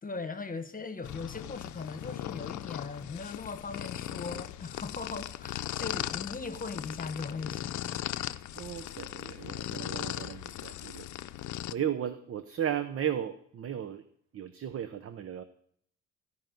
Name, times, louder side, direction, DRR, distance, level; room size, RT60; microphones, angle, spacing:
voice 1, 0.0-7.8, left 4 dB, 30° left, 1.2 m, -39 dB
sound 1, 1.0-11.7, left 13 dB, 75° left, 0.6 m, -38 dB
voice 2, 8.5-11.1 11.7-14.0 14.3-15.4, right 9 dB, 50° right, 0.8 m, -35 dB
16.0 x 5.6 x 9.1 m
cardioid pair, 90°, 30 cm